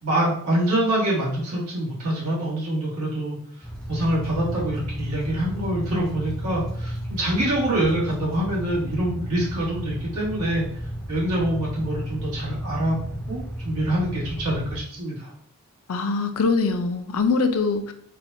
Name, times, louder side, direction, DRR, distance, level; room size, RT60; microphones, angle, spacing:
voice 1, 0.0-3.4 3.9-10.7 11.1-15.3, right 1 dB, 85° right, -5 dB, 1.4 m, -25 dB
sound 1, 3.6-14.8, equal, 5° left, 0.4 m, -33 dB
voice 2, 15.9-17.9, left 4 dB, 75° left, 7 dB, 0.4 m, -23 dB
4.2 x 2.2 x 2.6 m, 0.64 s
head